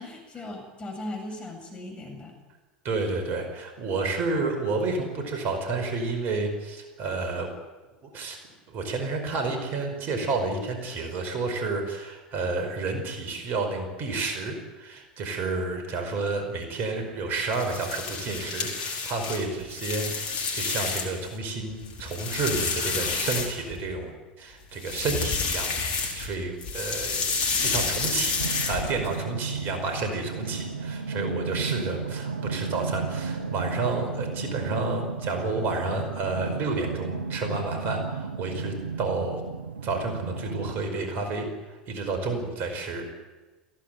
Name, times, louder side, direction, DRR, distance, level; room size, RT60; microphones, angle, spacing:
voice 1, 0.0-2.3, left 1 dB, 20° left, 2 dB, 7.8 m, -38 dB
voice 2, 2.8-7.5 8.0-8.4 8.7-24.1 24.4-28.4 28.7-39.4 39.8-43.1, right 3 dB, 45° right, 5 dB, 5.0 m, -30 dB
sound 1, 17.4-21.3 21.7-23.9 24.7-26.3 26.6-29.1, left 5 dB, 65° left, 5.0 m, -29 dB
sound 2, 28.4-40.9, right 5 dB, 85° right, 0.9 m, -33 dB
18.0 x 16.5 x 9.3 m, 1.2 s
hypercardioid pair, 85°, 5 cm